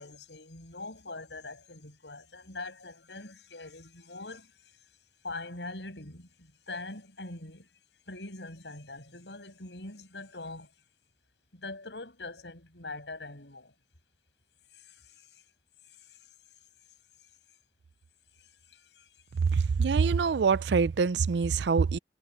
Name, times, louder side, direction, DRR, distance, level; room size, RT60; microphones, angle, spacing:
voice 1, 0.0-4.6 5.2-7.7 8.1-10.7 11.5-13.7 14.7-15.4 16.1-16.2 18.4-19.2, left 2 dB, 75° left, 6.9 m, -43 dB
voice 2, 19.4-22.0, right 5 dB, 70° right, 0.4 m, -25 dB
head